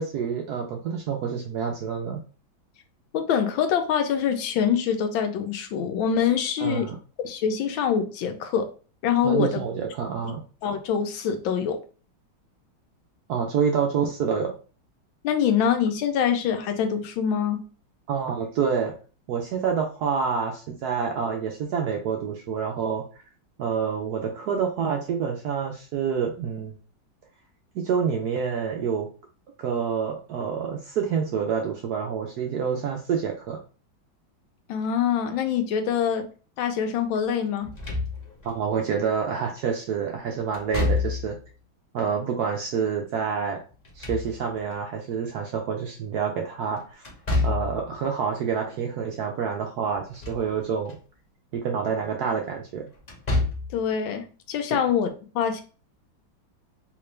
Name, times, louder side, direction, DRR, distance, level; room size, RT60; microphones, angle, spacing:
voice 1, 0.0-2.2 6.6-7.0 9.2-10.4 13.3-14.5 18.1-18.9 19.3-23.2 23.6-26.8 27.7-29.1 29.6-33.6 38.4-41.4 41.9-43.6 43.9-47.1 47.4-51.0 51.5-52.9, right 6 dB, 75° right, 2 dB, 0.9 m, -27 dB
voice 2, 3.1-6.9 7.2-8.7 9.0-9.6 10.6-11.8 15.2-17.6 34.7-36.2 36.6-37.7 53.7-55.1 55.3-55.6, left 8 dB, 80° left, 6 dB, 1.4 m, -24 dB
Slam / Thump thud, 37.6-38.5 40.5-41.4 43.7-44.7 47.0-47.8 49.9-50.5 50.9-51.0 53.0-53.8, left 3 dB, 40° left, 0.6 m, -27 dB
3.5 x 2.9 x 3.1 m, 0.37 s
omnidirectional pair, 2.2 m